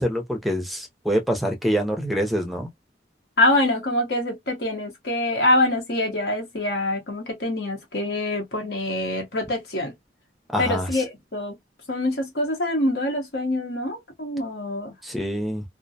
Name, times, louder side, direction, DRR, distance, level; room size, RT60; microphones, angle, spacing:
voice 1, 0.0-2.7 10.5-11.0 15.0-15.6, equal, ahead, 0.5 m, -25 dB
voice 2, 3.4-9.9 10.6-11.6 11.9-14.9, left 1 dB, 70° left, 0.8 m, -25 dB
2.5 x 2.1 x 2.6 m
head